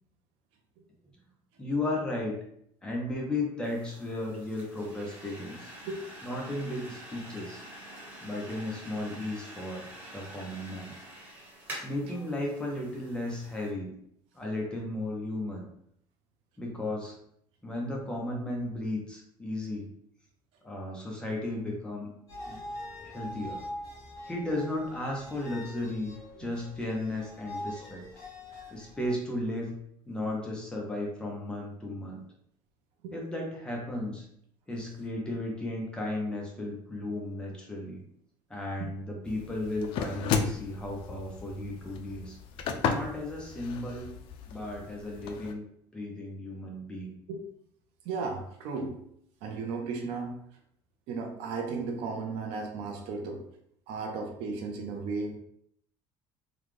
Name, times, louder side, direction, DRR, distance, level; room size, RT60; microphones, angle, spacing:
voice 1, 1.6-2.4 2.8-5.7 6.2-7.6 8.2-10.9 11.8-13.9 14.3-15.7 16.6-17.2 17.6-19.9 20.6-22.1 22.5-22.7 23.0-23.6 24.3-26.1 26.4-28.0 28.7-29.7 30.1-32.2 33.1-34.3 34.7-38.0 38.5-42.4 42.9-44.1 44.5-45.6 45.9-47.1, left 1 dB, 10° left, -2 dB, 0.7 m, -35 dB
sound 1, 3.6-13.7, right 1 dB, 20° right, 1.3 m, -47 dB
voice 2, 5.8-6.3 7.9-8.0 26.4-26.5 28.5-28.7 33.0-33.1 35.3-35.4 38.8-38.9 47.3-47.4 48.0-49.0 49.4-50.3 51.1-53.4 53.9-55.4, right 4 dB, 75° right, 3 dB, 0.7 m, -35 dB
sound 2, 22.3-29.1, left 1 dB, 30° left, 1.3 m, -43 dB
sound 3, 39.3-45.5, left 6 dB, 60° left, 0.4 m, -34 dB
3.8 x 2.3 x 3.2 m, 0.70 s
cardioid pair, 165°, 10 cm